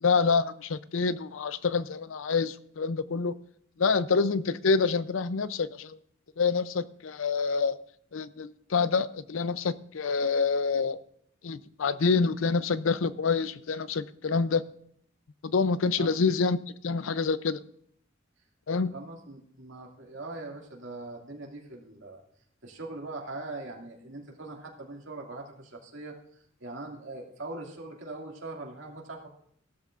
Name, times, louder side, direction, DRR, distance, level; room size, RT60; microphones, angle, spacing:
voice 1, 0.0-3.3 3.8-6.0 6.4-7.8 8.1-11.0 11.4-14.6 15.4-16.6 16.8-17.6 18.7-18.9, left 4 dB, 85° left, 15 dB, 0.5 m, -27 dB
voice 2, 18.9-22.2 22.6-29.3, right 2 dB, 70° right, 0 dB, 2.3 m, -41 dB
15.5 x 12.5 x 2.5 m, 0.67 s
head